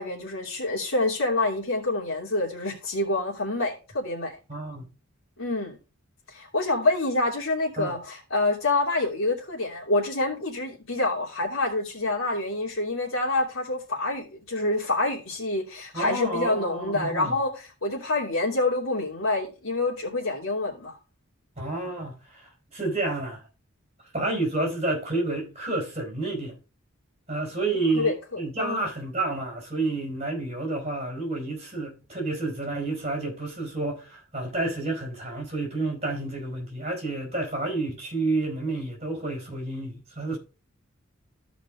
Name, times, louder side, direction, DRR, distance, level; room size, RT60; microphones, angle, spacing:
voice 1, 0.0-4.3 5.4-5.8 6.3-21.0 27.9-28.8, left 2 dB, 75° left, 2.9 m, -27 dB
voice 2, 4.5-4.9 7.8-7.9 15.9-17.3 21.6-23.4 24.1-26.6 27.3-40.4, right 2 dB, 30° right, 4.2 m, -30 dB
14.5 x 5.1 x 3.5 m
head